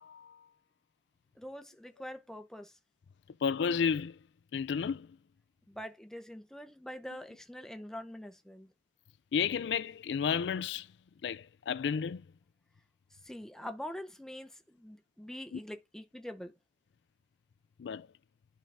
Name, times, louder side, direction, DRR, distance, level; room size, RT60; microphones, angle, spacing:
voice 1, 0.0-0.4 3.4-4.2 4.5-5.1 9.3-10.9 11.2-12.2 15.5-15.6 17.8-18.1, left 6 dB, 75° left, 0.4 m, -32 dB
voice 2, 1.4-2.7 5.7-8.7 13.2-16.5, left 1 dB, 5° left, 0.8 m, -44 dB
11.0 x 3.9 x 3.4 m
head